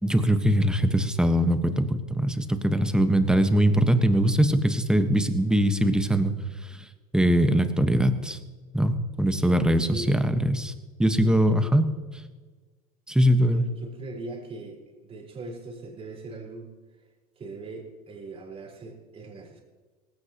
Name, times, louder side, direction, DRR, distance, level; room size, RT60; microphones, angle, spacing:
voice 1, 0.0-6.3 6.6-6.9 7.1-8.4 8.7-10.7 11.0-11.8 13.1-13.7, equal, 5° right, 9 dB, 1.3 m, -22 dB
voice 2, 9.2-10.2 11.2-11.7 13.4-16.7 17.4-19.6, right 2 dB, 30° right, -1 dB, 4.6 m, -41 dB
18.5 x 17.0 x 3.0 m, 1.4 s
hypercardioid pair, 100°, 19 cm